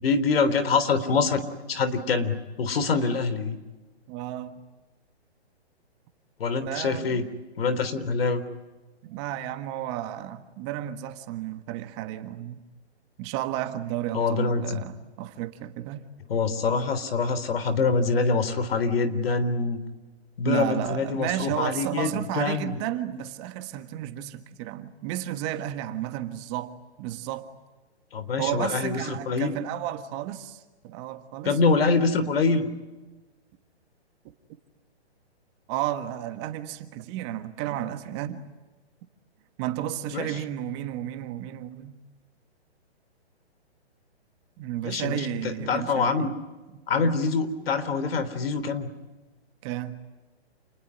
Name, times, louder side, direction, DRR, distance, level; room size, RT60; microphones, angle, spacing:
voice 1, 0.0-1.4 1.7-3.6 6.4-7.2 7.6-8.4 14.1-14.8 16.3-19.8 20.4-22.8 28.1-29.5 31.4-32.7 40.1-40.3 44.8-46.3 46.9-48.9, left 4 dB, 60° left, 3.7 m, -25 dB
voice 2, 4.1-4.6 6.6-7.3 9.0-12.6 13.2-16.1 20.4-27.5 28.4-31.7 35.7-38.5 39.6-42.0 44.6-46.3 46.7-47.1 49.6-50.0, right 12 dB, 25° right, 1.5 m, -33 dB
28.5 x 21.0 x 10.0 m
hypercardioid pair, 150°, 33 cm